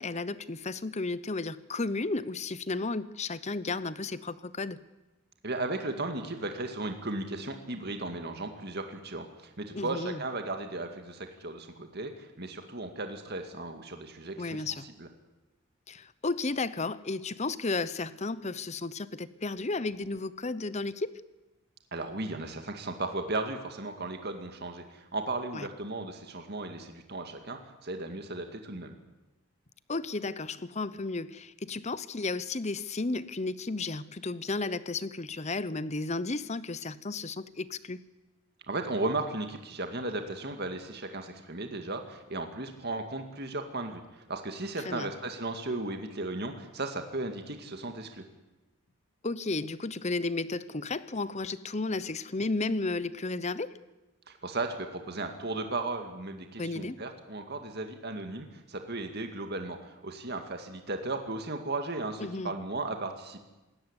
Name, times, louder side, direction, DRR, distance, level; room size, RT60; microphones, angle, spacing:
voice 1, 0.0-4.8 9.7-10.2 14.4-14.9 15.9-21.1 25.5-25.7 29.9-38.0 44.8-45.1 49.2-53.8 56.6-57.0 62.2-62.5, left 3 dB, 30° left, 16 dB, 0.8 m, -33 dB
voice 2, 5.4-14.5 15.0-15.1 21.9-28.9 38.7-48.2 54.3-63.4, right 2 dB, 50° right, 5 dB, 2.1 m, -36 dB
26.5 x 14.0 x 9.9 m, 1.1 s
head